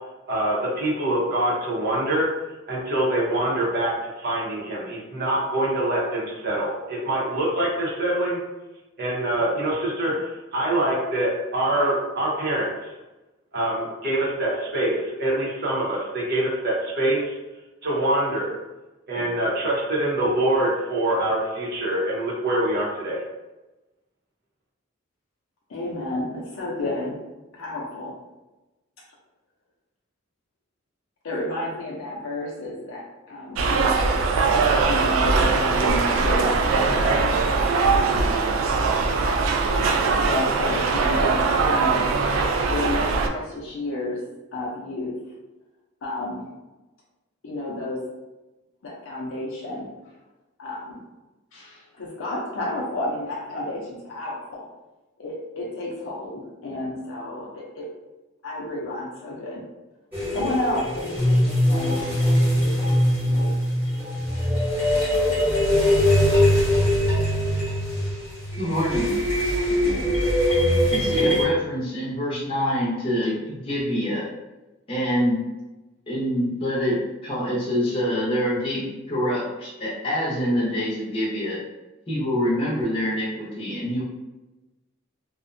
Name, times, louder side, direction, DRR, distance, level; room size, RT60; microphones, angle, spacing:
voice 1, 0.3-2.3 2.7-3.9 4.2-8.4 9.0-12.9 13.5-17.4 17.8-18.5 19.1-23.2, right 1 dB, 55° right, -4 dB, 0.7 m, -24 dB
voice 2, 25.7-27.2 27.5-28.1 31.2-37.2 37.9-38.3 39.2-42.1 42.7-44.2 44.5-45.1 46.0-46.5 47.4-48.0 48.8-50.1 50.6-51.0 51.5-54.7 55.2-57.9 58.4-59.6 60.3-63.6 69.5-70.2, left 1 dB, 70° left, -4 dB, 0.5 m, -31 dB
sound 1, 33.6-43.3, right 4 dB, 70° right, 0.3 m, -21 dB
sound 2, 60.1-71.4, equal, 10° right, 0.9 m, -21 dB
voice 3, 68.6-69.1 70.9-74.3 74.9-75.4 76.1-81.6 82.1-84.0, equal, 25° left, -6 dB, 0.7 m, -25 dB
2.5 x 2.1 x 2.5 m, 1.1 s
head